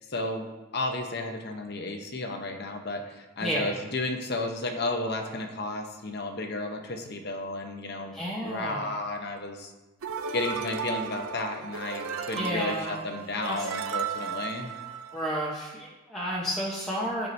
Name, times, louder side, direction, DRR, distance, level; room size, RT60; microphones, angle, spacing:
voice 1, 0.1-8.1 8.4-9.7 10.3-14.8, left 2 dB, 50° left, 4 dB, 0.9 m, -33 dB
voice 2, 3.4-3.8 8.1-8.9 12.4-13.0 13.5-13.6 15.1-17.3, equal, ahead, -7 dB, 1.0 m, -31 dB
sound 1, 10.0-15.5, right 6 dB, 90° right, 0.6 m, -35 dB
13.5 x 4.8 x 2.7 m, 1.1 s
head